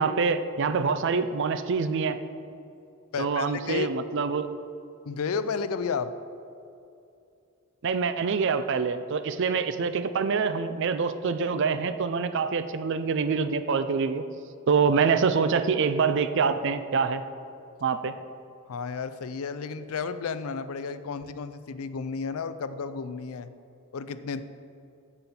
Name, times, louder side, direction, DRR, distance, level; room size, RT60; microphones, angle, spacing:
voice 1, 0.0-2.2 3.2-4.5 7.8-14.2 14.7-17.2 17.8-18.1, right 5 dB, 55° right, 11 dB, 0.4 m, -25 dB
voice 2, 3.1-3.9 5.0-6.1 18.7-23.5 23.9-24.4, left 5 dB, 75° left, 12 dB, 0.4 m, -32 dB
9.6 x 7.0 x 4.3 m, 2.6 s
head